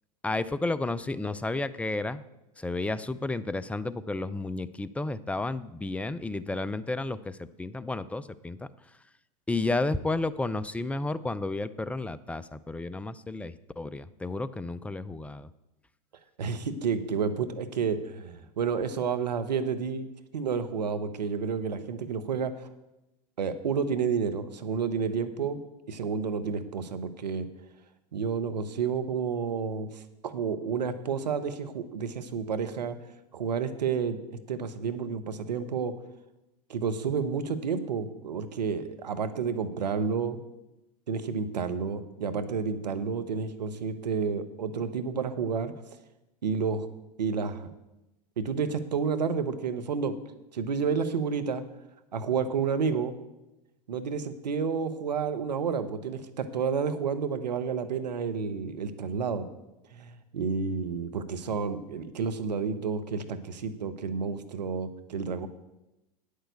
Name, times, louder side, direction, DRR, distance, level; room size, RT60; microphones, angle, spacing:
voice 1, 0.2-2.2 2.6-8.7 9.5-15.5, left 2 dB, 5° left, 15 dB, 0.4 m, -32 dB
voice 2, 16.4-20.1 20.3-22.7 23.4-25.6 25.9-27.5 28.1-33.0 33.3-35.9 36.7-40.4 41.1-45.7 46.4-46.9 47.2-47.7 48.4-50.2 50.5-51.6 52.1-53.1 53.9-59.4 59.9-65.5, right 6 dB, 90° right, 10 dB, 0.9 m, -30 dB
8.9 x 6.6 x 8.2 m, 0.95 s
hypercardioid pair, 95°, 21 cm